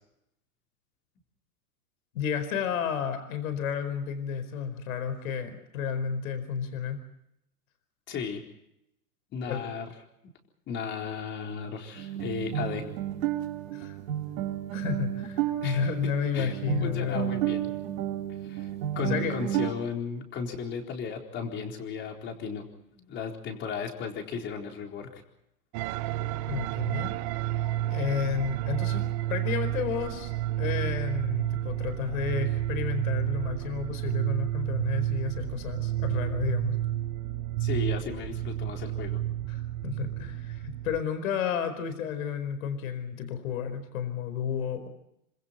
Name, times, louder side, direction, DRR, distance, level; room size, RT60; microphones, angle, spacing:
voice 1, 2.1-7.0 9.5-9.6 13.7-14.0 14.7-17.3 19.0-19.3 26.5-27.1 27.9-29.0 29.3-30.3 30.6-36.8 39.5-44.9, left 7 dB, 60° left, 10 dB, 4.8 m, -32 dB
voice 2, 8.1-8.4 9.3-9.9 10.7-12.8 15.6-15.9 16.3-16.5 16.8-17.8 18.4-22.7 22.9-25.2 37.6-39.2, left 6 dB, 25° left, 2 dB, 4.2 m, -35 dB
sound 1, 11.9-19.7, right 12 dB, 55° right, 3.6 m, -32 dB
sound 2, 25.7-41.0, right 13 dB, 25° right, 0.7 m, -30 dB
27.5 x 26.0 x 4.4 m, 0.80 s
hypercardioid pair, 155°, 47 cm